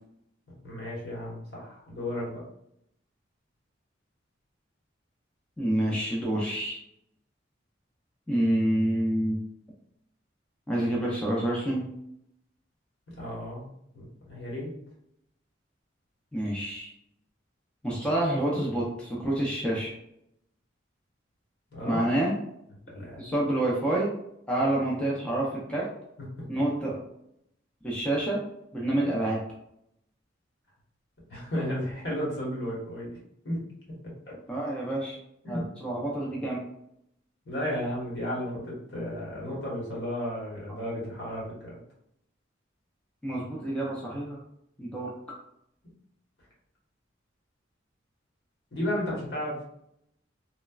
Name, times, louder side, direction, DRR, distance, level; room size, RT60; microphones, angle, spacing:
voice 1, 0.6-2.4 13.2-13.7 13.9-14.7 21.7-22.0 22.9-23.3 31.3-33.1 33.4-33.6 34.3-34.4 35.4-35.6 37.4-41.8 48.7-49.6, equal, 70° left, -5 dB, 1.2 m, -33 dB
voice 2, 5.6-6.8 8.3-9.4 10.7-11.9 16.3-16.9 17.8-19.9 21.8-22.3 23.2-24.1 24.5-25.9 26.5-27.0 27.8-28.4 28.7-29.4 34.5-35.2 35.5-36.6 43.2-44.4 44.8-45.1, right 1 dB, 5° left, -4 dB, 0.5 m, -28 dB
3.1 x 2.1 x 2.3 m, 0.76 s
head